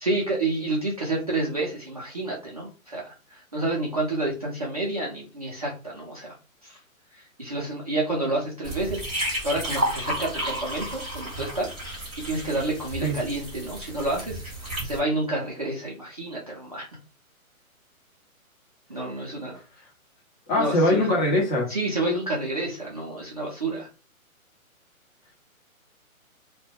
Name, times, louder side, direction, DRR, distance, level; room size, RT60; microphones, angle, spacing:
voice 1, 0.0-6.3 6.6-6.8 7.1-14.4 14.8-16.9 18.9-19.6 20.5-21.1 21.7-23.9, right 2 dB, 30° right, 0.4 m, -29 dB
sound 1, 8.6-15.0, right 1 dB, ahead, 0.9 m, -32 dB
voice 2, 20.5-21.7, left 1 dB, 35° left, 0.9 m, -22 dB
2.2 x 2.1 x 3.2 m
hypercardioid pair, 145°, 42 cm